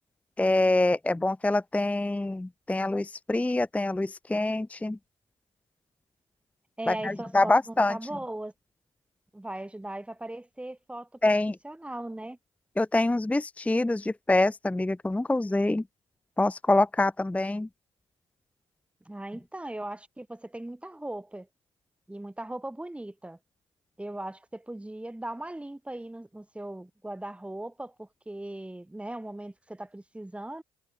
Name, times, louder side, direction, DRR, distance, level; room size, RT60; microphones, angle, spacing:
voice 1, 0.4-5.0 6.9-8.0 11.2-11.6 12.8-15.8 16.4-17.7, left 2 dB, 10° left, 0.6 m, -25 dB
voice 2, 6.8-8.5 9.3-11.4 11.6-12.4 19.1-21.5 22.1-23.4 24.0-30.6, right 1 dB, 5° right, 1.0 m, -39 dB
hypercardioid pair, 55°, 17 cm